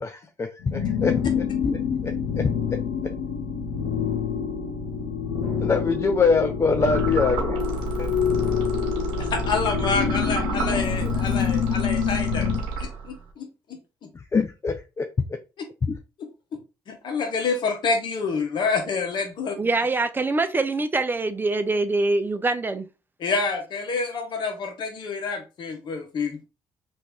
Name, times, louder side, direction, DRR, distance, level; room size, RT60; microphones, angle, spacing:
voice 1, 0.0-2.1 5.6-7.6 8.0-8.1 14.1-15.1 15.8-16.0, left 4 dB, 30° left, 0.4 m, -24 dB
sound 1, 0.6-12.6, left 8 dB, 90° left, 0.8 m, -26 dB
sound 2, 6.8-13.3, right 4 dB, 80° right, 1.1 m, -30 dB
voice 2, 9.2-12.4 12.8-13.5 16.9-19.5 23.2-26.4, left 4 dB, 60° left, 1.1 m, -27 dB
voice 3, 19.6-22.9, right 3 dB, 25° right, 0.5 m, -24 dB
2.9 x 2.6 x 3.5 m
supercardioid pair, 65°, 9 cm